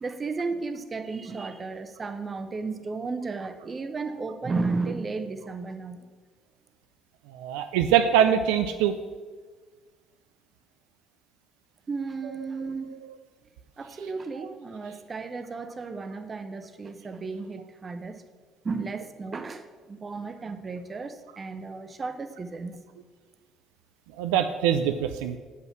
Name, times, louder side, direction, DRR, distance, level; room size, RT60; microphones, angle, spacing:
voice 1, 0.0-6.1 11.9-13.0 13.8-18.2 18.6-22.8, right 4 dB, 35° right, 9 dB, 0.8 m, -34 dB
voice 2, 7.3-8.9 12.2-12.4 24.2-25.4, right 9 dB, 80° right, 8 dB, 0.4 m, -23 dB
7.7 x 5.7 x 5.9 m, 1.5 s
hypercardioid pair, 60°, 0 cm